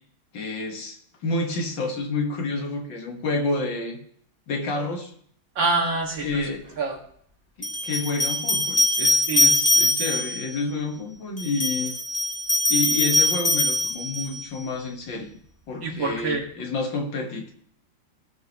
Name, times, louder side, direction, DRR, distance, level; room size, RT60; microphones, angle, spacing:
voice 1, 0.3-4.0 4.5-5.1 6.2-6.8 7.6-11.9 12.7-15.3 15.7-17.5, left 3 dB, 75° left, 2 dB, 2.3 m, -29 dB
voice 2, 5.6-6.5 6.8-7.0 9.3-9.5 15.8-16.4, right 3 dB, 75° right, 0 dB, 2.7 m, -26 dB
sound 1, 6.3-6.4 7.6-10.4 11.4-14.4, left 1 dB, 5° left, 2.5 m, -22 dB
17.0 x 6.2 x 3.1 m, 0.62 s
omnidirectional pair, 2.1 m